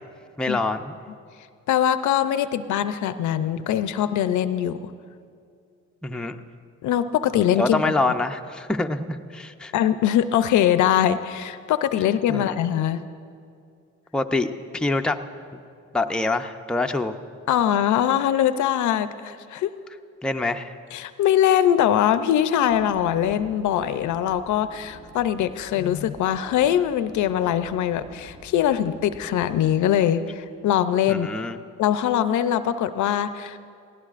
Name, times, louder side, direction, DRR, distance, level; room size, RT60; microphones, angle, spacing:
voice 1, 0.4-1.0 6.0-6.4 7.6-9.7 12.3-12.6 14.1-15.2 15.9-17.1 20.2-20.7 31.1-31.6, left 2 dB, 5° left, 5 dB, 0.5 m, -25 dB
voice 2, 1.7-4.9 6.8-7.8 9.7-13.0 17.5-19.7 20.9-31.3 31.8-33.6, left 10 dB, 75° left, 12 dB, 0.6 m, -22 dB
sound 1, 22.7-29.9, right 1 dB, 60° right, 2.6 m, -48 dB
19.0 x 16.5 x 2.5 m, 2.3 s
cardioid pair, 90°, 30 cm